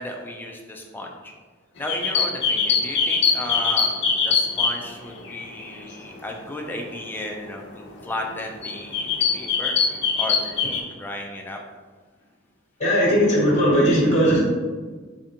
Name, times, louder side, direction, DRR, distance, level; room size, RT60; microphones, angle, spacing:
voice 1, 0.0-1.3 1.8-3.9 4.2-9.1 9.3-9.8 10.2-10.4 11.0-11.6, left 1 dB, 10° left, 1 dB, 0.4 m, -34 dB
sound 1, 1.8-5.8 6.3-6.5 7.5-7.6 8.1-8.3 8.6-10.8, left 5 dB, 55° left, 0.6 m, -22 dB
voice 2, 12.8-14.4, equal, 35° left, -4 dB, 1.0 m, -18 dB
3.8 x 3.3 x 2.8 m, 1.4 s
head